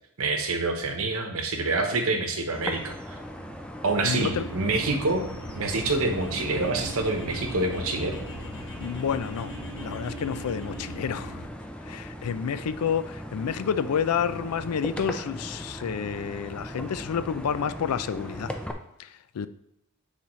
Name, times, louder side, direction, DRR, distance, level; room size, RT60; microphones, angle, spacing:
voice 1, 0.2-3.2 3.8-5.3 5.5-8.2, right 3 dB, 70° right, 1.0 m, -27 dB
sound 1, 2.5-18.7, equal, 5° left, 0.4 m, -39 dB
voice 2, 4.0-4.5 8.8-11.4 11.8-18.6 19.0-19.5, left 7 dB, 90° left, 0.4 m, -29 dB
sound 2, 4.1-11.5, right 1 dB, 70° left, 0.9 m, -41 dB
sound 3, 5.3-11.1, left 2 dB, 55° left, 1.5 m, -47 dB
8.6 x 4.0 x 3.1 m
head